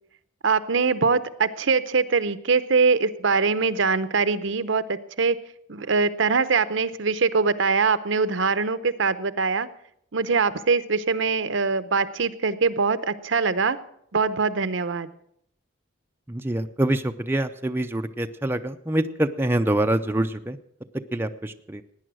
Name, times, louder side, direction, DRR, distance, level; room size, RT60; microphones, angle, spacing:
voice 1, 0.4-5.4 5.7-9.7 10.1-13.8 14.1-15.1, right 4 dB, 65° right, 13 dB, 0.8 m, -23 dB
voice 2, 16.3-20.6 21.1-21.8, right 1 dB, 10° right, 6 dB, 0.5 m, -25 dB
17.0 x 9.9 x 6.3 m, 0.71 s
head